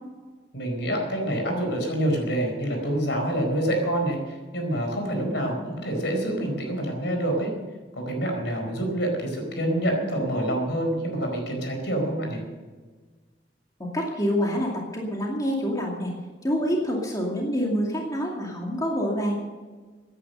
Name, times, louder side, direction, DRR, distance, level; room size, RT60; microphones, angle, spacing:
voice 1, 0.5-7.5 7.9-12.4, right 1 dB, 65° left, 2 dB, 4.6 m, -27 dB
voice 2, 13.8-16.1 16.4-19.4, equal, 20° left, -2 dB, 2.4 m, -26 dB
16.5 x 10.0 x 6.6 m, 1.4 s
head